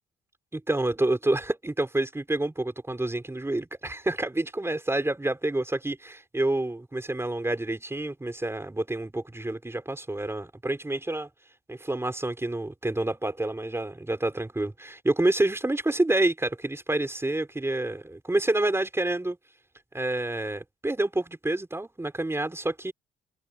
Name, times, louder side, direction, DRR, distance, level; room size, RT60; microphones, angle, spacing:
voice 1, 0.5-11.3 11.7-19.4 19.9-22.9, right 2 dB, 15° right, 4.2 m, -28 dB
cardioid pair, 90°, 20 cm